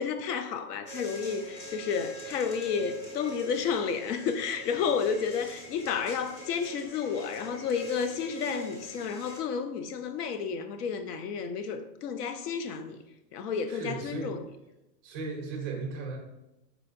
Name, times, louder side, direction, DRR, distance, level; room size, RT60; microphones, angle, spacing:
voice 1, 0.0-13.0 13.3-14.4, left 6 dB, 75° left, 0.7 m, -31 dB
sound 1, 0.9-9.4, right 1 dB, 30° left, 0.9 m, -44 dB
voice 2, 13.7-14.4 15.0-16.2, right 4 dB, 20° right, 0.3 m, -36 dB
4.8 x 4.4 x 2.5 m
supercardioid pair, 155°, 47 cm